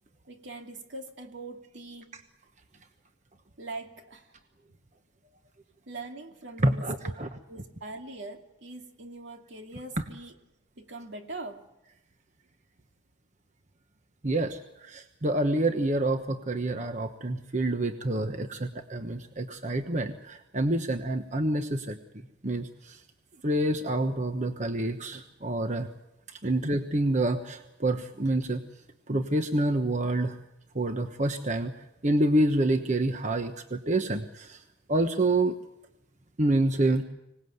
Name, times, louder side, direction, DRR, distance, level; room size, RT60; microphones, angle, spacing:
voice 1, 0.3-2.2 3.6-4.3 5.9-7.2 7.5-10.3 10.8-11.7, right 2 dB, 75° right, 4 dB, 2.6 m, -42 dB
voice 2, 6.6-7.3 14.2-22.0 22.4-23.0 23.4-25.9 26.4-28.6 29.1-30.4 30.7-31.7 32.0-34.6 34.9-35.5 36.4-37.0, right 1 dB, 40° right, 6 dB, 1.1 m, -27 dB
25.5 x 18.5 x 8.1 m, 0.87 s
head